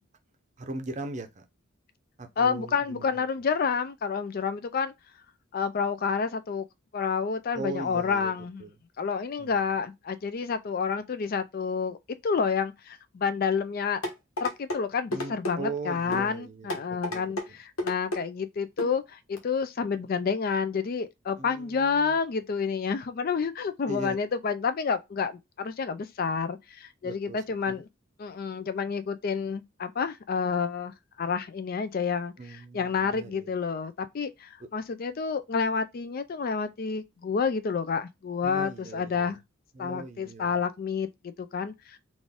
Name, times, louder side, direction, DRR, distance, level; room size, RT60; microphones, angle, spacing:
voice 1, 0.6-1.5 2.2-3.2 7.5-8.8 9.4-9.7 15.1-17.6 21.4-22.2 23.9-24.2 27.0-27.8 32.4-33.6 34.6-34.7 38.4-39.4 39.7-40.6, right 2 dB, 35° right, 0.6 m, -39 dB
voice 2, 2.4-4.9 5.5-6.7 6.9-8.6 9.0-12.0 12.2-14.0 14.4-27.8 28.2-32.3 32.7-39.4 39.8-42.0, left 5 dB, 45° left, 0.4 m, -29 dB
sound 1, 14.0-14.8 15.1-15.6 16.1-16.3 16.7-17.5 17.8-18.2 18.8-19.0 19.4-19.5, left 1 dB, 90° left, 1.2 m, -32 dB
4.0 x 2.5 x 3.4 m
head